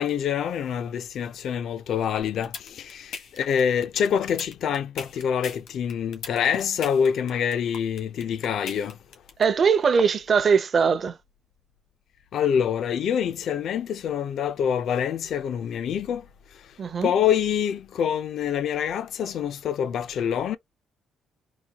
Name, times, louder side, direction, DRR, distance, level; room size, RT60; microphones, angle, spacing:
voice 1, 0.0-2.5 2.8-3.1 3.4-8.9 12.3-16.2 17.0-20.6, left 8 dB, 65° left, 0.5 m, -26 dB
sound 1, 2.2-9.4, left 6 dB, 80° left, 1.3 m, -37 dB
voice 2, 9.4-11.2 16.8-17.1, right 6 dB, 45° right, 0.6 m, -21 dB
4.0 x 2.2 x 2.9 m
cardioid pair, 110°, 0 cm